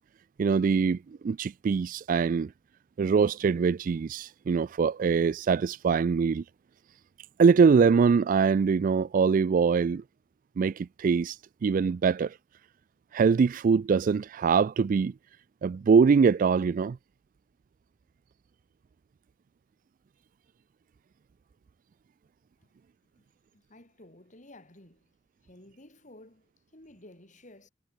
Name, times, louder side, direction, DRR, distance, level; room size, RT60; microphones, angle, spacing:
voice 1, 0.4-2.5 3.0-6.4 7.4-10.0 10.6-11.4 11.6-12.3 13.1-15.1 15.6-17.0, right 5 dB, 45° right, 0.3 m, -23 dB
voice 2, 23.5-25.0 25.4-27.7, left 1 dB, 40° left, 4.9 m, -53 dB
head